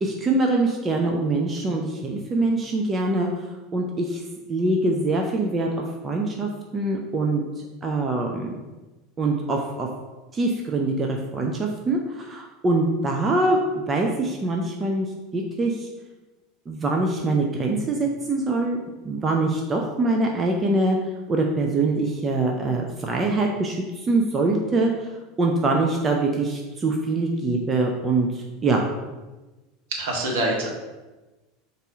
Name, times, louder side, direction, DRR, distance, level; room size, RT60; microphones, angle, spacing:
voice 1, 0.0-3.3 3.7-4.2 4.5-7.4 7.8-8.6 9.2-9.9 10.3-13.6 13.9-15.1 15.3-15.9 16.7-18.8 19.0-21.0 21.3-25.1 25.4-28.8, right 2 dB, 25° right, 1 dB, 0.5 m, -24 dB
voice 2, 29.9-30.7, right 1 dB, 65° right, 0 dB, 1.0 m, -25 dB
4.0 x 2.6 x 4.7 m, 1.2 s
figure-of-eight pair, 75°, 0 cm